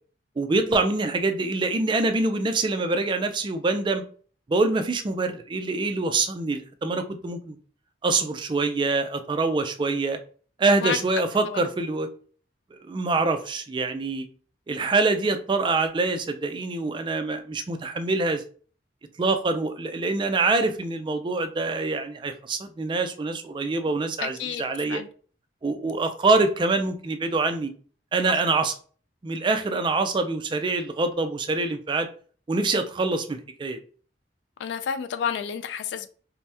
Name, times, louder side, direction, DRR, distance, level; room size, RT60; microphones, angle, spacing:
voice 1, 0.4-4.0 4.5-7.6 8.0-10.2 10.6-12.1 12.7-14.3 14.7-18.4 19.2-25.0 25.6-27.7 28.1-28.7 29.2-32.1 32.5-33.8, right 3 dB, 25° right, 0.3 m, -25 dB
voice 2, 24.2-24.6 24.9-25.1 34.6-36.1, left 7 dB, 75° left, 0.3 m, -30 dB
2.8 x 2.1 x 3.3 m
head